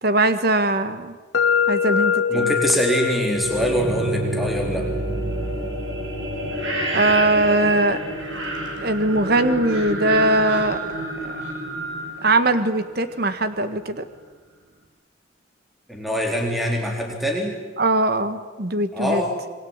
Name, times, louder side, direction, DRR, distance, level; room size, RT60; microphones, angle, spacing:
voice 1, 0.0-1.1 1.7-2.5 6.9-8.0 8.8-10.8 11.3-11.4 12.2-14.0 17.8-19.2, right 2 dB, 55° right, 11 dB, 1.6 m, -20 dB
sound 1, 1.3-9.2, left 6 dB, 80° left, 1.0 m, -27 dB
voice 2, 2.3-4.9 15.9-17.6 18.9-19.4, equal, ahead, 1 dB, 3.8 m, -24 dB
sound 2, 3.3-13.1, right 1 dB, 75° right, 5.9 m, -28 dB
27.5 x 22.0 x 9.0 m, 1.3 s
head